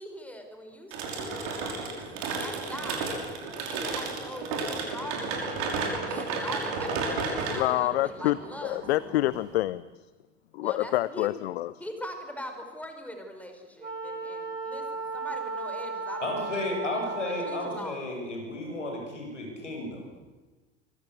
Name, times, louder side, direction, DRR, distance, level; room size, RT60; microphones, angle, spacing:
voice 1, 0.0-3.2 3.6-8.8 10.6-11.3 11.8-16.4 16.9-18.0, left 1 dB, 5° left, 5 dB, 5.2 m, -42 dB
sound 1, 0.9-9.6, right 4 dB, 50° right, 5.9 m, -33 dB
voice 2, 7.5-9.9 10.5-11.7, left 15 dB, 60° left, 19 dB, 0.7 m, -27 dB
Wind instrument woodwind instrument, 13.8-18.0, right 3 dB, 80° right, 2.8 m, -35 dB
voice 3, 16.2-20.0, left 2 dB, 80° left, 1 dB, 7.4 m, -33 dB
25.0 x 22.0 x 8.2 m, 1.3 s
figure-of-eight pair, 75°, 36 cm